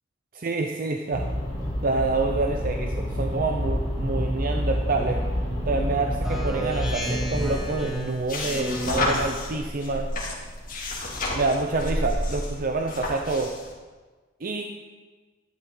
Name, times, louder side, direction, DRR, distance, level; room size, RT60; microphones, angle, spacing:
voice 1, 0.3-1.3 1.8-5.2 5.7-10.1 11.3-13.5 14.4-14.7, right 3 dB, 45° right, 3 dB, 0.6 m, -27 dB
sound 1, 1.1-7.5, equal, 20° right, 2.5 m, -28 dB
Speech synthesizer, 6.2-9.6, right 1 dB, ahead, 1.8 m, -32 dB
sound 2, 6.9-13.7, left 1 dB, 45° left, 2.4 m, -31 dB
11.5 x 10.5 x 3.8 m, 1.3 s
head